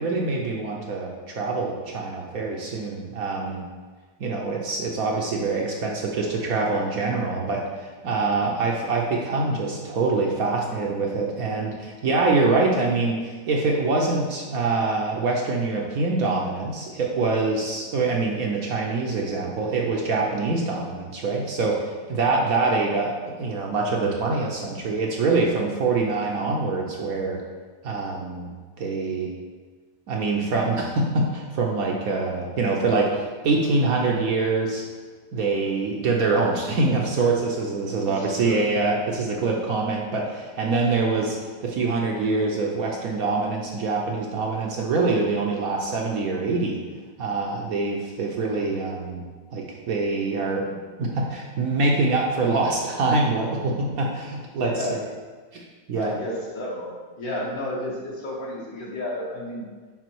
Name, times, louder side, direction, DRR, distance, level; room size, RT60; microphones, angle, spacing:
voice 1, 0.0-3.6 4.2-27.4 27.8-28.5 28.8-29.3 30.1-34.8 35.3-46.8 47.2-49.2 49.5-50.6 51.0-55.0 55.5-56.1, right 3 dB, 65° right, -1 dB, 1.0 m, -25 dB
voice 2, 38.0-38.7 54.6-55.0 56.0-59.7, left 1 dB, 55° left, -3 dB, 1.7 m, -32 dB
6.0 x 4.7 x 4.5 m, 1.4 s
omnidirectional pair, 1.9 m